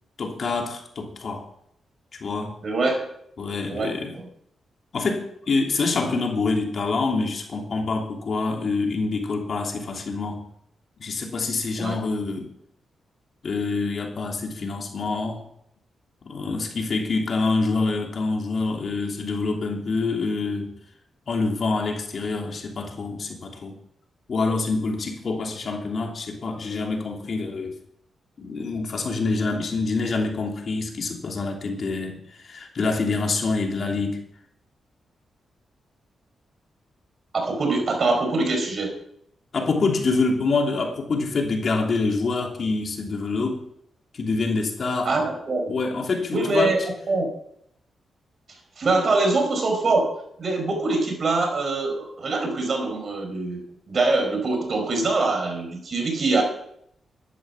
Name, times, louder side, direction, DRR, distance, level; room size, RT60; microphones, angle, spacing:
voice 1, 0.2-1.5 2.2-2.5 3.4-4.2 4.9-10.4 11.0-12.5 13.4-15.4 16.3-20.8 21.3-23.8 24.3-27.7 28.4-34.2 39.5-43.6 44.1-45.1 45.7-46.7, left 3 dB, 55° left, 1 dB, 3.1 m, -26 dB
voice 2, 2.6-3.1 3.7-4.3 11.8-12.0 37.3-38.9 45.1-45.7 46.3-46.8 47.1-47.3 48.8-53.6 53.9-56.4, right 3 dB, 50° right, 4 dB, 5.0 m, -24 dB
12.5 x 11.5 x 5.9 m, 0.72 s
cardioid pair, 90°, 0 cm